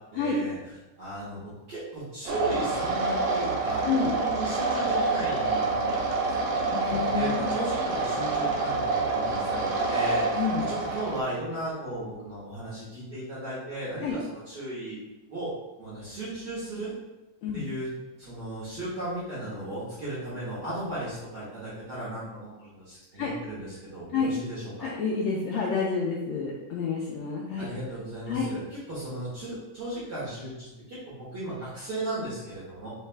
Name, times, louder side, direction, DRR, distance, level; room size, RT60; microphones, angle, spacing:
voice 1, 0.1-0.6 1.0-15.0 15.3-15.5 15.8-16.9 17.5-17.9 18.2-24.9 27.6-32.9, right 1 dB, 50° right, -10 dB, 1.3 m, -36 dB
sound 1, 2.3-11.2, right 3 dB, 75° right, 1.5 m, -27 dB
voice 2, 6.7-7.5 10.3-10.6 14.0-14.2 17.4-17.6 23.2-23.3 24.1-24.3 24.8-27.7 28.3-28.5, left 5 dB, 85° left, -3 dB, 1.5 m, -29 dB
4.7 x 3.3 x 3.3 m, 1.0 s
omnidirectional pair, 3.6 m